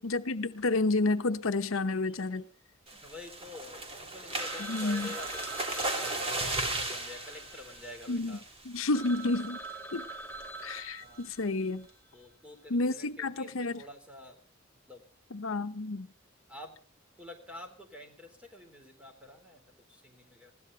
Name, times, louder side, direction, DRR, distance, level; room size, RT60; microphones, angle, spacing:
voice 1, 0.0-2.4 4.7-5.1 8.1-8.4 8.6-9.6 9.9-10.0 10.6-11.9 12.7-13.8 15.3-16.1, left 2 dB, 75° left, 0.9 m, -30 dB
sound 1, 2.9-8.6 9.1-9.3 9.6-9.7 10.1-10.4, right 2 dB, 30° right, 2.8 m, -36 dB
voice 2, 3.0-5.5 5.9-8.4 11.0-11.2 12.1-14.4 14.9-15.0 16.5-16.8 17.2-20.5, left 2 dB, 5° right, 3.6 m, -48 dB
Telephone, 4.4-8.2 8.6-8.7 8.9-11.8, right 2 dB, 10° left, 1.0 m, -44 dB
20.5 x 16.0 x 4.0 m
head